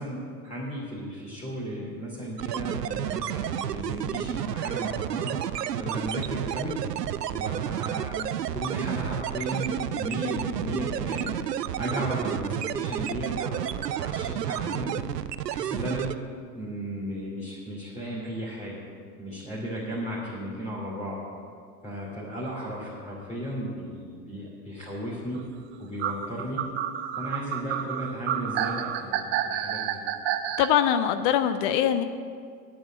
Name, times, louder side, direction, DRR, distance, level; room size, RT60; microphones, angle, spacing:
voice 1, 0.0-5.4 5.8-6.7 7.3-11.3 11.8-14.9 15.5-16.1 16.5-18.8 19.2-21.2 21.8-25.4 25.8-26.6 27.2-30.0, equal, 15° left, -6 dB, 2.8 m, -35 dB
sound 1, 2.4-16.2, right 11 dB, 80° right, 0.6 m, -31 dB
sound 2, 26.0-30.7, right 10 dB, 25° right, 0.4 m, -29 dB
voice 2, 30.6-32.0, left 10 dB, 35° left, 10 dB, 0.5 m, -22 dB
9.2 x 8.9 x 7.5 m, 2.2 s
figure-of-eight pair, 90°, 49 cm